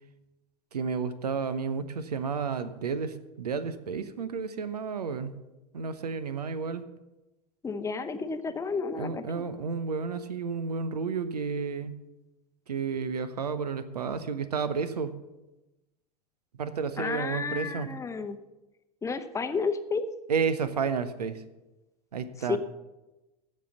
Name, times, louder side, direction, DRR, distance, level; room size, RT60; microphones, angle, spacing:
voice 1, 0.7-5.4 5.7-6.8 9.0-11.9 12.7-15.2 16.6-17.9 20.3-21.4 22.1-22.6, right 5 dB, 75° right, 13 dB, 0.9 m, -31 dB
voice 2, 7.6-9.4 17.0-18.4 19.0-20.0 22.5-22.6, left 5 dB, 15° left, 9 dB, 0.8 m, -31 dB
15.0 x 5.5 x 7.0 m, 1.0 s
figure-of-eight pair, 80°, 21 cm